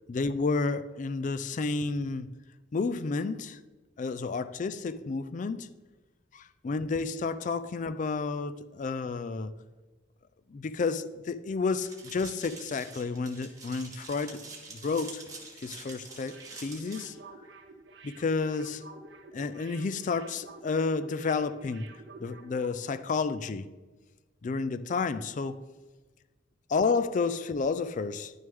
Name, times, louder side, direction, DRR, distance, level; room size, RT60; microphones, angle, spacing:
voice 1, 0.1-2.3 2.7-3.6 4.0-5.7 6.3-9.5 10.5-14.4 14.7-15.2 15.6-17.1 18.0-18.8 19.3-21.9 22.2-23.7 24.4-25.6 26.7-28.3, left 4 dB, 45° left, 0.4 m, -31 dB
sound 1, 11.8-17.1, right 3 dB, 20° right, 1.8 m, -46 dB
sound 2, 16.2-22.8 23.1-23.2, right 3 dB, 75° right, 0.8 m, -51 dB
11.0 x 6.4 x 3.5 m
head